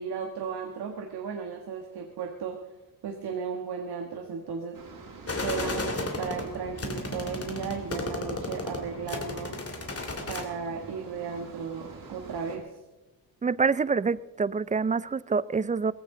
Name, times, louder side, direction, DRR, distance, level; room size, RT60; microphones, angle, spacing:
voice 1, 0.0-2.6 3.0-4.8 5.4-9.6 10.3-12.7, right 6 dB, 85° right, 1.5 m, -35 dB
sound 1, 4.7-12.6, right 4 dB, 60° right, 4.0 m, -46 dB
sound 2, 5.3-10.4, left 2 dB, 40° left, 2.4 m, -34 dB
voice 2, 13.4-15.9, right 5 dB, 20° right, 0.4 m, -26 dB
18.5 x 16.0 x 3.8 m
cardioid pair, 90°, 38 cm